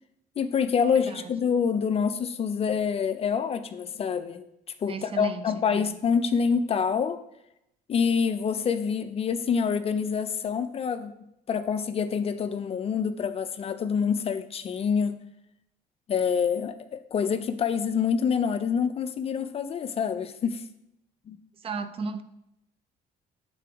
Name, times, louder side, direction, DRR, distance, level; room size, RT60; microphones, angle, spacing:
voice 1, 0.4-4.5 4.8-7.2 7.9-11.1 11.5-15.2 16.1-20.6 21.3-21.4, left 6 dB, 35° left, 0.4 m, -26 dB
voice 2, 4.9-5.9 21.6-22.2, right 5 dB, 35° right, 0.4 m, -34 dB
7.5 x 3.8 x 3.4 m
cardioid pair, 110°, 17 cm